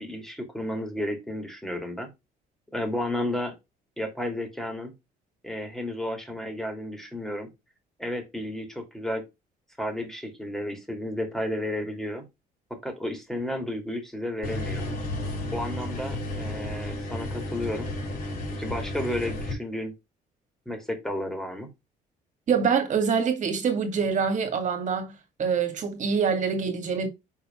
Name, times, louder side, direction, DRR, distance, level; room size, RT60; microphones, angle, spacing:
voice 1, 0.0-2.1 2.7-3.5 4.0-4.9 5.4-7.5 8.0-9.2 9.8-12.2 12.7-14.9 15.5-17.9 18.6-19.9 20.7-21.7, left 1 dB, ahead, 2.6 m, -32 dB
sound 1, 14.4-19.5, left 1 dB, 60° left, 4.0 m, -32 dB
voice 2, 22.5-27.1, right 6 dB, 45° right, 2.2 m, -25 dB
5.9 x 4.2 x 4.4 m
cardioid pair, 110°, 17 cm